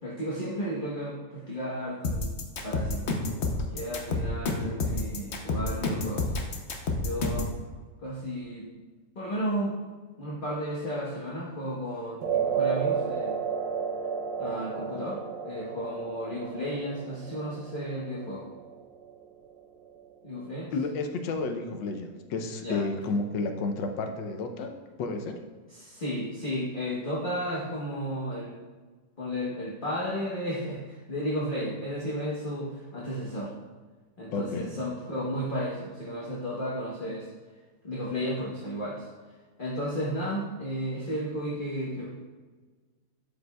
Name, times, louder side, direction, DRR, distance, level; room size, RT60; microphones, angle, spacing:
voice 1, 0.0-2.3 2.6-3.2 3.7-6.3 7.0-7.5 8.0-8.7 9.1-9.8 10.2-13.4 14.4-18.5 20.2-20.7 22.6-22.9 25.7-28.6 29.2-33.5 34.2-37.3 37.8-39.1 39.6-42.1, equal, 30° left, -6 dB, 1.1 m, -33 dB
sound 1, 2.0-7.6, left 2 dB, 55° left, 0.8 m, -29 dB
sound 2, 12.2-20.6, right 6 dB, 75° right, 1.3 m, -33 dB
voice 2, 20.7-24.7 25.0-25.4 34.3-34.7, left 3 dB, 80° left, 5 dB, 1.4 m, -31 dB
11.5 x 5.3 x 2.3 m, 1.4 s
omnidirectional pair, 2.0 m